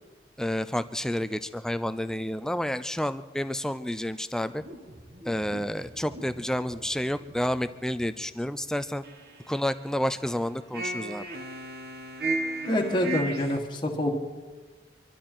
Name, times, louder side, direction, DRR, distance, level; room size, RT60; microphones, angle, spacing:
voice 1, 0.4-4.6 5.2-9.0 9.5-11.3, left 1 dB, 5° left, 13 dB, 0.4 m, -30 dB
sound 1, 4.6-8.6 9.0-9.9 10.7-13.6, right 1 dB, 55° right, 1.5 m, -36 dB
voice 2, 12.7-14.1, left 1 dB, 25° left, 1 dB, 1.5 m, -26 dB
25.5 x 12.5 x 4.5 m, 1.4 s
head